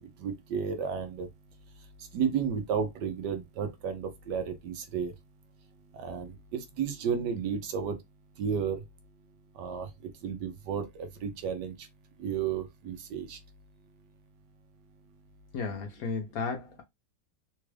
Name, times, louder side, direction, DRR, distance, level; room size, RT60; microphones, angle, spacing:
voice 1, 0.2-1.3 2.1-5.1 6.0-8.0 8.4-8.8 9.6-9.9 10.2-11.7 12.2-13.4, right 7 dB, 75° right, 1.2 m, -32 dB
voice 2, 15.5-16.8, left 4 dB, 65° left, 1.0 m, -34 dB
3.5 x 2.3 x 3.2 m
omnidirectional pair, 2.0 m